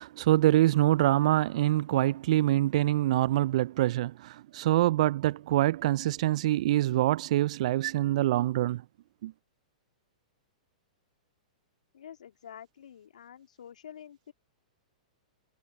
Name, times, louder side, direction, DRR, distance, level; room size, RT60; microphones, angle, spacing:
voice 1, 0.0-8.8 9.2-9.3, right 15 dB, 60° right, 0.4 m, -25 dB
voice 2, 11.9-14.3, left 9 dB, 75° left, 3.0 m, -48 dB
hypercardioid pair, 115°, 4 cm